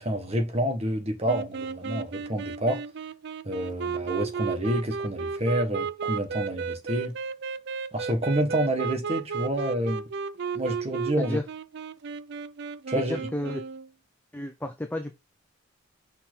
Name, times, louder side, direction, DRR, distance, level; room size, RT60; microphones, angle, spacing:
voice 1, 0.0-2.8 3.4-7.1 7.9-10.1 10.5-11.4 12.9-13.2, right 1 dB, 30° right, 1.5 m, -28 dB
sound 1, 1.3-13.9, right 5 dB, 55° right, 0.4 m, -34 dB
voice 2, 12.9-13.6 14.3-15.1, left 1 dB, 10° left, 0.4 m, -32 dB
5.7 x 4.3 x 4.0 m
head